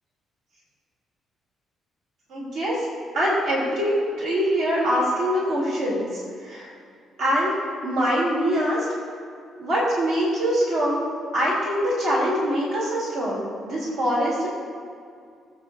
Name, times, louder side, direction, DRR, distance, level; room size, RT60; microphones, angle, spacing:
voice 1, 2.3-2.8 3.1-6.7 7.2-7.5 7.8-8.9 9.6-11.1 11.3-14.5, equal, 75° right, -6 dB, 3.1 m, -23 dB
21.0 x 8.0 x 2.7 m, 2.3 s
cardioid pair, 90°, 0 cm